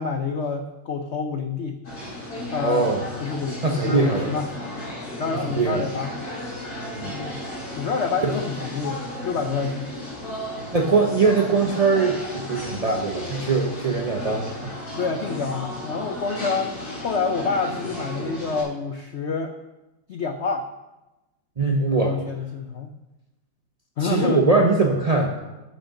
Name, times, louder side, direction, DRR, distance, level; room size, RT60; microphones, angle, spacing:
voice 1, 0.0-1.8 2.5-2.9 3.2-4.5 5.1-6.1 7.0-7.4 7.8-9.9 14.9-16.7 17.0-19.5 20.1-20.7 22.0-22.9 24.0-24.5, left 4 dB, 80° left, 6 dB, 0.6 m, -27 dB
sound 1, 1.8-18.6, left 1 dB, 50° left, 5.2 m, -34 dB
voice 2, 2.6-3.0 3.6-4.3 5.5-5.9 6.9-7.1 8.2-8.3 10.7-14.7 21.6-22.1 24.0-25.4, right 3 dB, 50° right, 1 dB, 0.4 m, -21 dB
11.0 x 6.5 x 7.1 m, 1.0 s
omnidirectional pair, 2.1 m